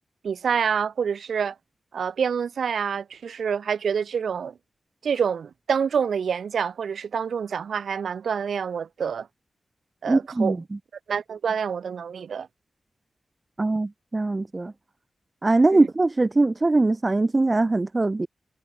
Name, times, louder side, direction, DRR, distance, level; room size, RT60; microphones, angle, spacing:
voice 1, 0.2-1.5 1.9-4.5 5.0-9.3 10.0-10.6 11.1-12.5 15.7-15.8, right 7 dB, 85° right, 2.9 m, -27 dB
voice 2, 10.1-10.8 13.6-14.7 15.4-18.3, right 2 dB, 40° right, 1.1 m, -22 dB
cardioid pair, 40°, 0 cm